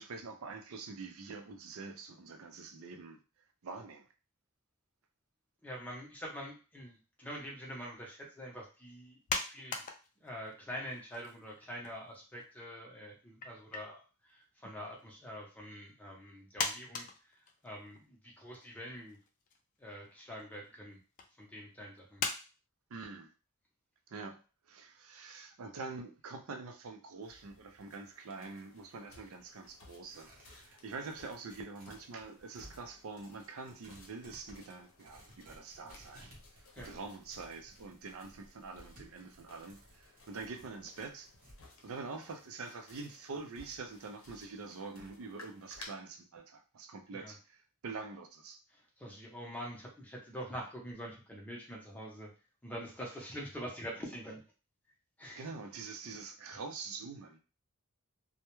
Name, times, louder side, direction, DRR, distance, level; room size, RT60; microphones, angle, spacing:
voice 1, 0.0-3.2 3.6-4.1 22.9-23.3 24.1-24.4 24.7-36.3 36.8-41.3 41.8-48.6 55.3-57.4, right 4 dB, 65° right, 5 dB, 0.5 m, -45 dB
voice 2, 5.6-9.9 10.2-17.4 17.6-19.2 19.8-21.0 21.4-22.2 36.8-36.9 47.1-47.3 48.7-52.3 52.6-54.4 55.2-55.5, equal, 5° left, -2 dB, 0.6 m, -45 dB
sound 1, 9.3-10.5 10.9-12.2 12.4-12.5 13.4-13.9 14.6-15.1 15.9-16.0 16.6-18.0 18.5-18.7 19.1-19.6 20.4-20.6 21.2-21.3 22.2-22.4, left 4 dB, 35° left, 0.3 m, -38 dB
sound 2, 27.2-45.9, left 2 dB, 60° left, 0.7 m, -59 dB
Tearing, 28.3-32.0 32.3-41.6, right 1 dB, 40° right, 0.8 m, -60 dB
2.2 x 2.1 x 3.0 m, 0.33 s
head